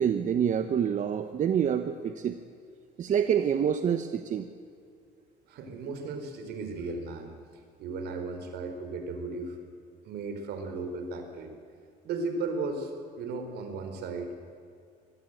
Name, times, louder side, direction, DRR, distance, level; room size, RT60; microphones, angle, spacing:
voice 1, 0.0-2.4 3.0-4.5, right 8 dB, 50° right, 8 dB, 1.1 m, -27 dB
voice 2, 5.5-7.3 7.8-9.6 10.0-11.5 12.0-14.3, right 3 dB, 75° right, 6 dB, 4.3 m, -35 dB
24.5 x 19.5 x 8.0 m, 2.4 s
cardioid pair, 110°, 17 cm